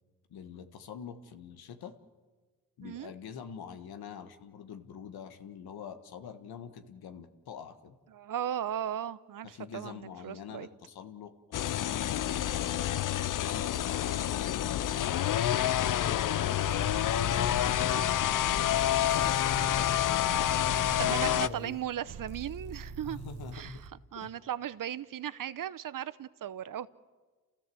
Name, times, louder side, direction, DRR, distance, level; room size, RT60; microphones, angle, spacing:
voice 1, 0.3-1.9 2.8-8.0 9.4-13.0 13.3-14.7 15.5-21.8 23.0-23.8 24.1-24.3, left 7 dB, 80° left, 8 dB, 1.6 m, -46 dB
voice 2, 2.8-3.1 8.1-10.7 21.0-23.2 23.5-23.8 24.1-26.9, right 10 dB, 60° right, 16 dB, 0.8 m, -37 dB
sound 1, 11.5-21.5, left 11 dB, 60° left, 0.6 m, -28 dB
sound 2, 16.7-23.9, right 5 dB, 75° right, 1.6 m, -44 dB
29.0 x 15.5 x 7.8 m, 1.4 s
cardioid pair, 65°, 37 cm